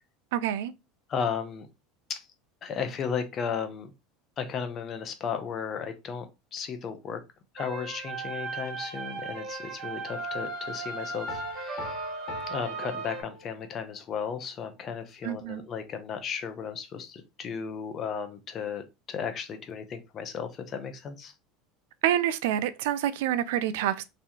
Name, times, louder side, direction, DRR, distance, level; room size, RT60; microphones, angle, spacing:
voice 1, 0.3-0.7 15.2-15.6 22.0-24.0, right 11 dB, 80° right, 0.4 m, -27 dB
voice 2, 1.1-1.7 2.1-2.2 2.6-3.9 4.4-7.2 7.5-12.1 12.5-21.3, left 6 dB, 35° left, 0.7 m, -35 dB
sound 1, 7.6-13.2, right 3 dB, 50° right, 0.9 m, -36 dB
Piano, 11.3-13.9, left 2 dB, 55° left, 1.0 m, -41 dB
3.3 x 3.1 x 2.8 m
supercardioid pair, 120°, 0 cm